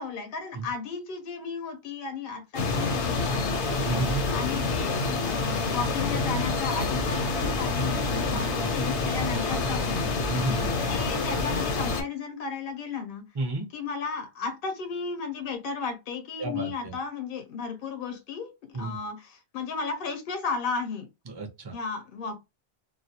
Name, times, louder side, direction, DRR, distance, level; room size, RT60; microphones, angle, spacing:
voice 1, 0.0-3.7 4.3-10.1 10.9-13.3 13.7-18.5 18.8-21.1 21.7-22.4, left 5 dB, 65° left, 0.7 m, -34 dB
sound 1, 2.5-12.0, left 3 dB, 85° left, 1.0 m, -27 dB
voice 2, 3.8-4.2 8.3-8.4 10.3-10.8 13.3-13.7 16.4-16.9 18.7-19.0 21.3-21.7, right 2 dB, 35° right, 0.4 m, -32 dB
2.3 x 2.0 x 2.6 m
omnidirectional pair, 1.1 m